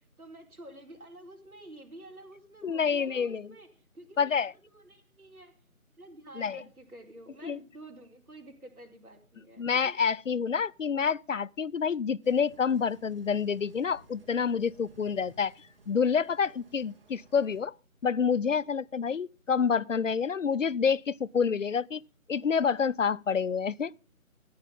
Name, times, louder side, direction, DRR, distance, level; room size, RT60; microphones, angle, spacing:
voice 1, 0.2-3.7 3.9-4.3 4.7-5.5 6.0-9.9, right 1 dB, 80° right, 4.6 m, -49 dB
voice 2, 2.6-3.5 4.2-4.5 6.4-6.6 7.4-7.6 9.6-15.5 15.9-17.7 18.0-22.0 22.3-23.9, left 6 dB, 60° left, 0.5 m, -28 dB
sound 1, 12.2-17.6, right 2 dB, 40° right, 3.6 m, -58 dB
14.0 x 9.5 x 5.4 m
figure-of-eight pair, 170°, 43 cm